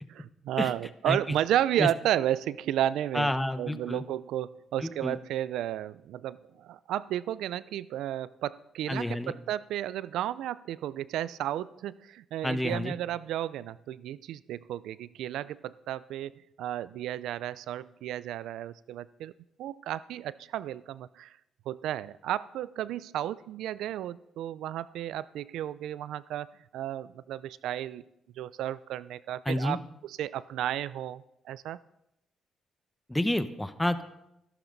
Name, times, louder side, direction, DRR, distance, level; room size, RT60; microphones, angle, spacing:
voice 1, 0.1-3.3 3.6-19.3 19.6-21.4 21.7-28.0 28.4-31.8, right 12 dB, 85° right, 18 dB, 0.4 m, -33 dB
voice 2, 3.1-4.0 4.8-5.2 8.9-9.3 12.4-12.9 29.4-29.8 33.1-34.0, left 1 dB, 10° left, 10 dB, 1.2 m, -29 dB
23.5 x 12.0 x 4.1 m, 0.83 s
cardioid pair, 90°, 0 cm